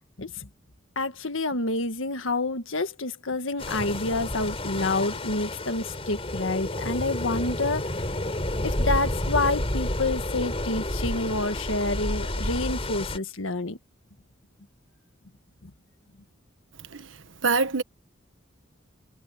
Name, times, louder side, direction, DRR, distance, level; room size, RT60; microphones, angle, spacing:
voice 1, 0.2-0.5 1.0-7.8 8.6-13.8 15.6-15.7, left 2 dB, 85° left, 1.7 m, -28 dB
sound 1, 3.6-13.2, left 1 dB, 30° left, 3.9 m, -30 dB
voice 2, 17.4-17.8, right 4 dB, 75° right, 1.2 m, -24 dB
head